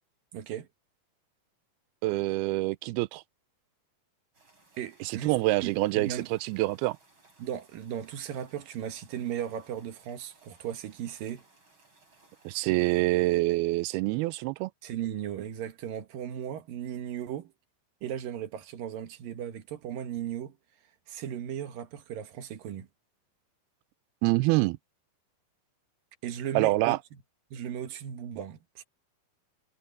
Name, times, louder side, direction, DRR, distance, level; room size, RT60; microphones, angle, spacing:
voice 1, 0.3-0.7 4.8-6.3 7.4-11.4 14.8-17.5 18.0-20.6 21.1-22.9 26.2-27.0 27.5-28.8, right 10 dB, 65° right, 3.0 m, -36 dB
voice 2, 2.0-3.2 5.0-7.0 12.5-14.7 24.2-24.8 26.6-27.0, right 19 dB, 85° right, 2.5 m, -26 dB
sound 1, 4.3-13.0, right 3 dB, 30° right, 8.8 m, -62 dB
omnidirectional pair, 4.5 m